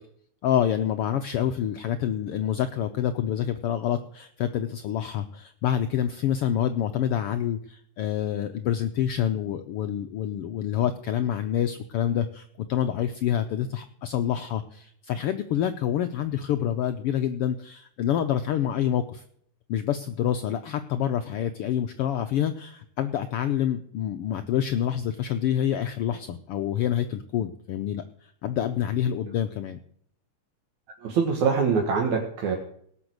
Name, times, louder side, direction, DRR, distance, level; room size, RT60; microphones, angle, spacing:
voice 1, 0.4-19.2 19.7-29.8, left 10 dB, 80° left, 9 dB, 1.3 m, -27 dB
voice 2, 31.0-32.6, right 5 dB, 75° right, 2 dB, 2.9 m, -24 dB
18.0 x 6.2 x 7.9 m, 0.65 s
omnidirectional pair, 3.4 m